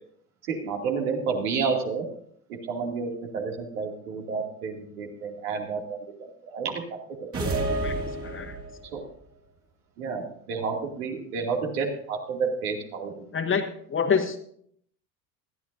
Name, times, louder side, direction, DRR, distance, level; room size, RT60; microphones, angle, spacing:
voice 1, 0.5-2.1 2.5-6.0 6.5-6.8 7.2-7.3 8.9-9.0 10.0-13.1, right 5 dB, 70° right, 1 dB, 2.7 m, -30 dB
sound 1, 7.3-8.9, right 2 dB, 30° right, 2.7 m, -29 dB
voice 2, 8.2-8.5 13.3-13.6 13.9-14.3, left 6 dB, 25° left, 6 dB, 1.7 m, -25 dB
20.5 x 13.0 x 2.7 m, 0.65 s
figure-of-eight pair, 70°, 47 cm